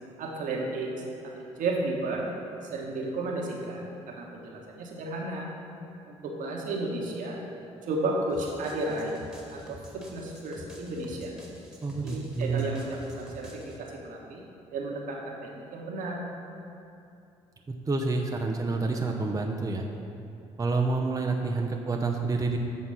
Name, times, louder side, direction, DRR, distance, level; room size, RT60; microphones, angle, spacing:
voice 1, 0.2-1.0 1.3-2.2 2.7-5.5 6.1-7.4 7.9-9.1 9.5-9.8 10.1-11.3 12.0-12.8 13.1-14.4 14.7-16.2, right 2 dB, 65° right, -1 dB, 1.3 m, -33 dB
sound 1, 8.3-13.8, equal, 5° right, 1.7 m, -48 dB
voice 2, 11.8-12.7 17.7-19.9 20.6-22.6, right 3 dB, 25° right, 2 dB, 0.6 m, -28 dB
7.8 x 4.2 x 5.6 m, 2.7 s
hypercardioid pair, 55°, 14 cm